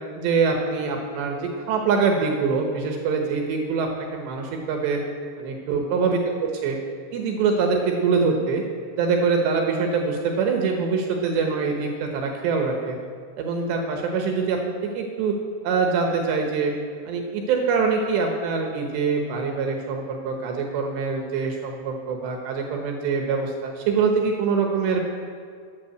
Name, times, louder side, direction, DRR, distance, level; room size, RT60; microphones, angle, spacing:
voice 1, 0.2-5.0 5.4-6.8 7.1-8.6 9.0-13.0 13.4-15.3 15.6-16.7 17.1-25.0, right 5 dB, 70° right, 2 dB, 2.9 m, -24 dB
13.0 x 8.0 x 7.9 m, 2.2 s
omnidirectional pair, 5.8 m